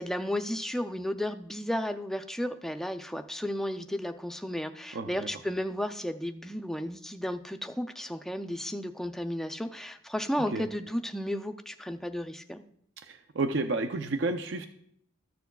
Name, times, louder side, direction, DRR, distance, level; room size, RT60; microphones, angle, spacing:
voice 1, 0.0-12.6, equal, ahead, 7 dB, 0.4 m, -33 dB
voice 2, 13.1-14.7, right 3 dB, 60° right, 7 dB, 0.5 m, -30 dB
14.0 x 6.9 x 2.3 m, 0.68 s
head